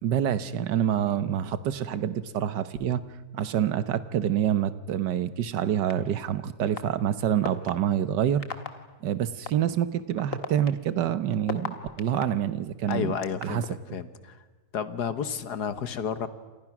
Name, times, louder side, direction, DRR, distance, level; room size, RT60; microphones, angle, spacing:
voice 1, 0.0-3.0 3.3-8.4 9.0-13.2 13.4-13.6 13.9-14.0, right 10 dB, 80° right, 13 dB, 1.6 m, -27 dB
sound 1, 5.9-6.0 6.8-6.9 7.4-7.7 8.4-8.7 9.5-9.6 10.2-12.2 12.9-13.7, left 5 dB, 50° left, 2.0 m, -33 dB
voice 2, 12.9-14.4 14.7-16.3, left 7 dB, 70° left, 12 dB, 1.8 m, -31 dB
29.0 x 27.5 x 6.1 m, 1.3 s
omnidirectional pair, 1.8 m